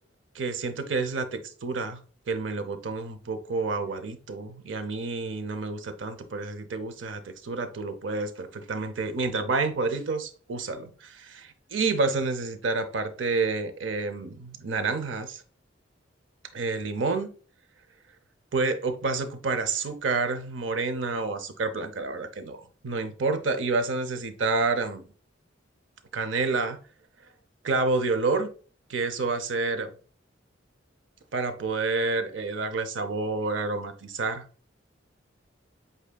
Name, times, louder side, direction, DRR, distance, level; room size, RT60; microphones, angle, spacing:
voice 1, 0.3-2.0 2.3-15.4 16.5-17.3 18.5-25.0 26.1-26.8 27.6-28.5 28.9-29.9 31.3-34.4, right 3 dB, 80° right, 0.6 m, -29 dB
7.2 x 2.7 x 2.2 m
head